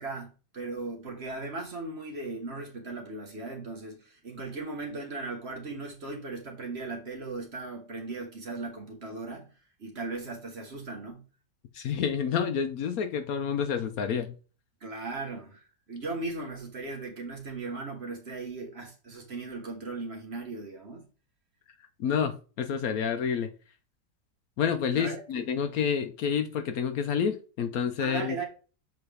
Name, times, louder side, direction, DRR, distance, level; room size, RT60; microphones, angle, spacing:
voice 1, 0.0-9.5 9.8-11.2 14.8-21.1 24.9-25.5 28.0-28.4, right 3 dB, 45° right, 1.2 m, -37 dB
voice 2, 11.7-14.3 22.0-23.5 24.6-28.4, left 7 dB, 65° left, 1.0 m, -29 dB
7.0 x 4.1 x 3.3 m
omnidirectional pair, 1.8 m